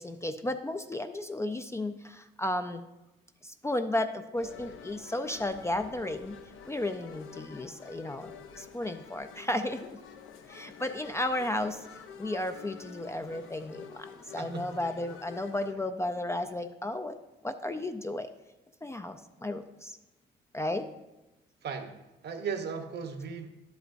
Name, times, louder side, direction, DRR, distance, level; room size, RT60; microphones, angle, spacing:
voice 1, 0.0-2.8 3.4-6.4 6.7-8.3 8.6-9.9 10.5-11.8 12.2-17.2 17.4-18.3 18.8-20.0 20.5-20.9, left 1 dB, 15° left, 8 dB, 0.4 m, -33 dB
sound 1, 4.4-15.7, left 6 dB, 80° left, 0.7 m, -48 dB
voice 2, 14.4-15.2 15.7-15.8 21.6-22.0 22.2-23.5, right 6 dB, 55° right, 7 dB, 0.9 m, -37 dB
11.0 x 8.0 x 2.6 m, 1.0 s
cardioid pair, 90°, 20 cm